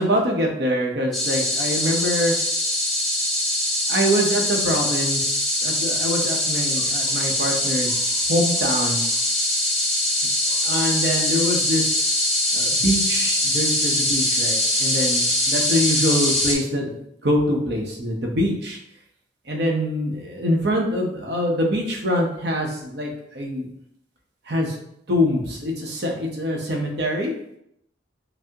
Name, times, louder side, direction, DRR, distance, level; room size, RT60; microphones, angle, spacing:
voice 1, 0.0-2.3 3.9-5.3 5.6-8.0 8.3-9.0 10.6-11.8 12.5-16.9 17.2-18.8 19.5-23.1 23.3-23.6 24.5-24.7 25.1-27.3, equal, 60° right, 0 dB, 0.7 m, -24 dB
sound 1, 1.1-16.5, left 1 dB, ahead, 0.6 m, -22 dB
5.6 x 2.0 x 2.8 m, 0.75 s
head